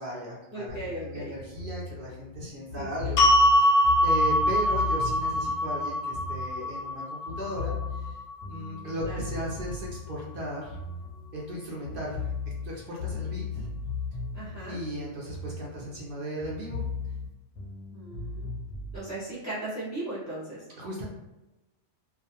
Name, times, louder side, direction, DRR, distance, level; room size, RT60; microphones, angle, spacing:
voice 1, 0.0-0.8 1.0-8.2 8.5-10.8 11.3-12.3 12.6-13.7 14.6-16.8 20.8-21.0, equal, 55° right, -4 dB, 0.6 m, -36 dB
voice 2, 0.5-1.3 2.8-3.1 9.0-9.3 14.3-14.8 17.9-18.5 18.9-20.7, right 2 dB, 25° right, -9 dB, 0.3 m, -37 dB
sound 1, 0.7-7.0 7.3-11.6 11.8-16.1 16.4-19.0, left 4 dB, 90° left, 1.0 m, -37 dB
sound 2, 3.2-9.4, equal, 60° left, 0.6 m, -24 dB
2.4 x 2.3 x 2.7 m, 1.0 s
omnidirectional pair, 1.3 m